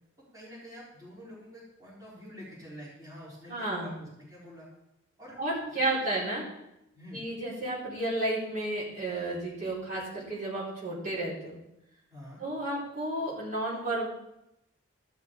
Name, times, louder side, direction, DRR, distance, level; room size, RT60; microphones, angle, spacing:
voice 1, 0.3-4.7 5.2-5.4 5.7-6.1 6.9-7.2 12.1-12.4, equal, 20° right, -8 dB, 4.1 m, -47 dB
voice 2, 3.5-3.9 5.4-6.4 7.1-11.6 12.4-14.1, right 1 dB, 45° right, -8 dB, 4.4 m, -32 dB
14.0 x 6.1 x 5.3 m, 0.86 s
head